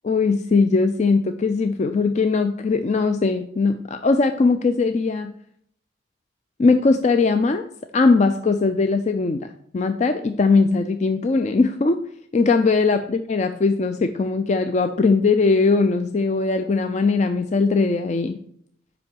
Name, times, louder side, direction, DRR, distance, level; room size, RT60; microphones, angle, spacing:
voice 1, 0.0-5.3 6.6-7.6 7.9-12.0 12.3-18.4, left 4 dB, 35° left, 8 dB, 0.3 m, -20 dB
7.6 x 5.2 x 4.5 m, 0.67 s
head